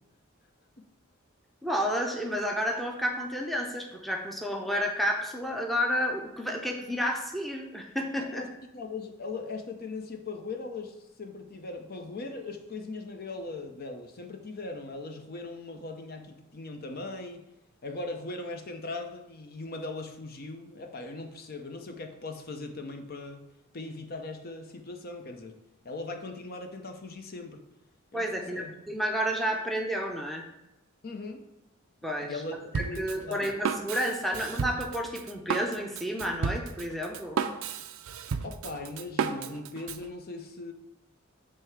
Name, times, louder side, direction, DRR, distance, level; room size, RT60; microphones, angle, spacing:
voice 1, 1.6-8.4 28.1-30.4 32.0-32.4 32.7-37.4, equal, ahead, 1 dB, 0.6 m, -31 dB
voice 2, 8.7-17.5 17.8-23.5 23.7-25.5 25.8-27.6 28.1-28.7 31.0-31.4 32.2-33.4 38.4-40.7, left 3 dB, 45° left, 5 dB, 0.6 m, -39 dB
Drum kit, 32.7-40.0, right 6 dB, 75° right, 0.4 m, -33 dB
7.4 x 3.3 x 4.7 m, 0.92 s
head